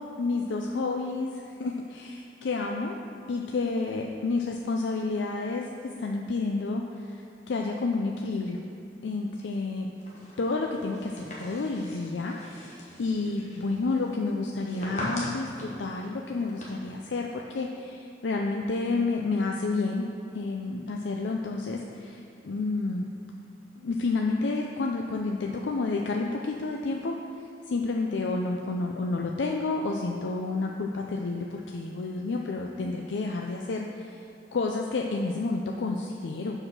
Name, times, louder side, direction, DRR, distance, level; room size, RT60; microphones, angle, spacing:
voice 1, 0.0-3.0 3.3-7.2 7.5-8.6 9.0-9.9 10.4-20.1 20.3-23.1 23.8-34.2 34.5-36.6, left 3 dB, 80° left, 1 dB, 0.4 m, -30 dB
sound 1, 10.0-16.6, left 1 dB, 40° left, 1.3 m, -42 dB
6.5 x 4.8 x 6.0 m, 2.4 s
head